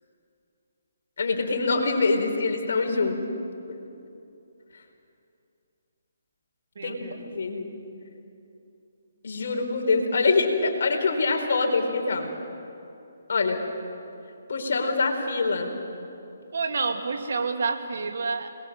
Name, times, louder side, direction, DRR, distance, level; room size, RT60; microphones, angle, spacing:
voice 1, 1.2-3.2 6.8-7.0 7.3-7.7 9.2-12.3 13.3-13.6 14.5-15.7, left 3 dB, 65° left, 2 dB, 4.6 m, -24 dB
voice 2, 6.7-7.3 11.5-11.6 16.5-18.5, right 4 dB, 65° right, 4 dB, 2.6 m, -29 dB
27.5 x 21.5 x 7.9 m, 2.7 s
hypercardioid pair, 150°, 0 cm